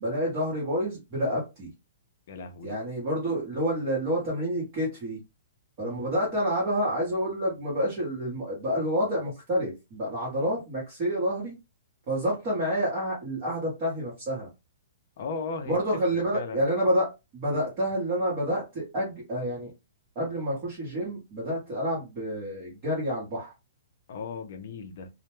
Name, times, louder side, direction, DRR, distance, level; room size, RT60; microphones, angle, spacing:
voice 1, 0.0-1.7 2.6-5.2 5.8-11.6 12.1-14.5 15.7-19.7 20.1-23.5, equal, 25° right, 0.9 m, -28 dB
voice 2, 2.3-2.7 5.8-6.0 15.2-15.8 16.1-16.6 24.1-25.1, left 4 dB, 40° left, 0.4 m, -37 dB
2.1 x 2.0 x 2.9 m
hypercardioid pair, 180°, 0 cm